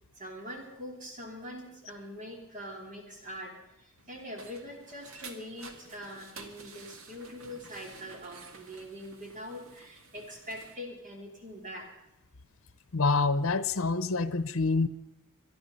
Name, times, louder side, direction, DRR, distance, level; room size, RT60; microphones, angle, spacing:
voice 1, 0.1-12.1, equal, 35° right, 3.1 m, -43 dB
sound 1, 4.0-10.8, right 4 dB, 75° right, 2.1 m, -51 dB
voice 2, 12.9-14.9, left 3 dB, 70° left, 0.8 m, -26 dB
25.0 x 10.5 x 5.5 m
head